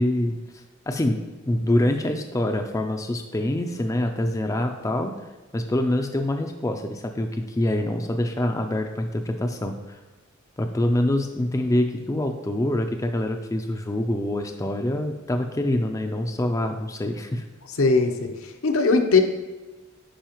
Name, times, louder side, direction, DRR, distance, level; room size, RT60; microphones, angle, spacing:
voice 1, 0.0-5.1 5.5-10.0 10.6-17.4, left 1 dB, 15° left, 5 dB, 0.4 m, -25 dB
voice 2, 17.8-18.3 18.6-19.2, left 4 dB, 75° left, 4 dB, 0.8 m, -19 dB
10.0 x 4.8 x 3.0 m, 1.2 s
head